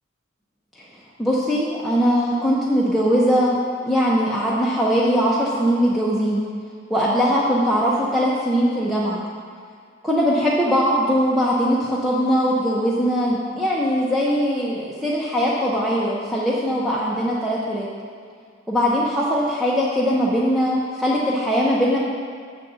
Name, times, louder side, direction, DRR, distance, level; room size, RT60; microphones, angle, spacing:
voice 1, 1.2-3.6 3.9-6.4 6.9-9.2 10.0-17.9 18.7-22.0, equal, ahead, -7 dB, 0.6 m, -20 dB
7.3 x 4.1 x 6.7 m, 2.1 s
head